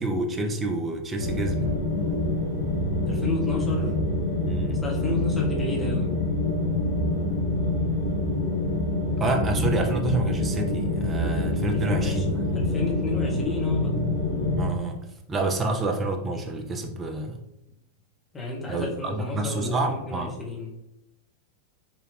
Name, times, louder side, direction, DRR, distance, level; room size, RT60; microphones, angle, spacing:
voice 1, 0.0-1.7 4.4-4.8 9.2-12.4 14.6-15.0 15.3-17.4 18.7-20.3, right 2 dB, 20° right, 3 dB, 0.5 m, -28 dB
sound 1, 1.2-14.7, left 1 dB, 75° left, 0.8 m, -26 dB
voice 2, 3.1-3.9 4.8-6.2 11.7-14.0 18.3-20.7, left 3 dB, 15° left, -2 dB, 0.8 m, -31 dB
2.8 x 2.4 x 3.2 m, 0.89 s
figure-of-eight pair, 90°, 0 cm